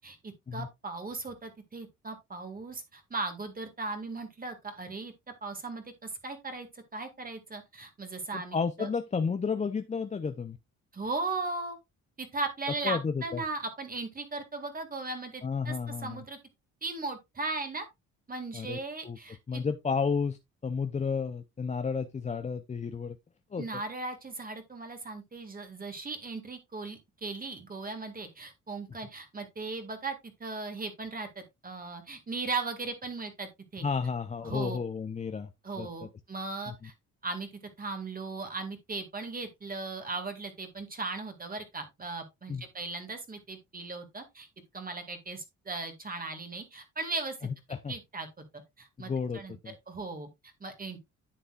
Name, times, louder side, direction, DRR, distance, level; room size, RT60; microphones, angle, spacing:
voice 1, 0.0-5.1 5.4-6.7 6.9-8.9 10.9-11.8 12.2-16.4 16.8-17.9 18.3-19.6 23.6-33.9 34.4-34.8 35.6-36.9 37.2-37.5 37.8-44.5 44.7-47.5 47.9-48.5 48.8-51.0, right 3 dB, 30° right, 1.9 m, -37 dB
voice 2, 8.3-10.6 12.8-13.4 15.4-16.2 18.5-18.8 19.0-19.2 19.5-23.2 23.5-23.7 33.8-35.5 35.8-35.9 36.7-36.9 42.5-42.6 47.7-47.9 49.1-49.7, left 5 dB, 25° left, 0.6 m, -32 dB
10.5 x 7.0 x 2.4 m
cardioid pair, 90°, 30 cm